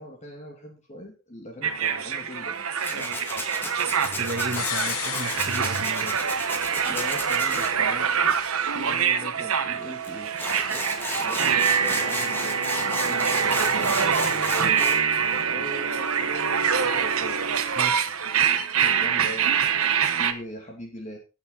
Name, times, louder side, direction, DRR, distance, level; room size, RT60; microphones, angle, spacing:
voice 1, 0.0-3.2 6.9-8.4 8.7-10.3 11.2-13.3 13.7-17.6 18.8-21.2, equal, 30° left, 1 dB, 2.4 m, -40 dB
sound 1, 1.6-20.3, right 7 dB, 80° right, 1.2 m, -25 dB
Tools, 2.8-7.7 10.0-10.1 10.4-15.0, left 1 dB, 10° left, 2.1 m, -33 dB
voice 2, 4.2-6.2 17.8-18.0, right 2 dB, 45° right, 9 dB, 1.4 m, -34 dB
sound 2, 4.6-6.5 6.8-6.9, left 12 dB, 75° left, 0.6 m, -33 dB
16.5 x 6.8 x 4.1 m, 0.31 s
head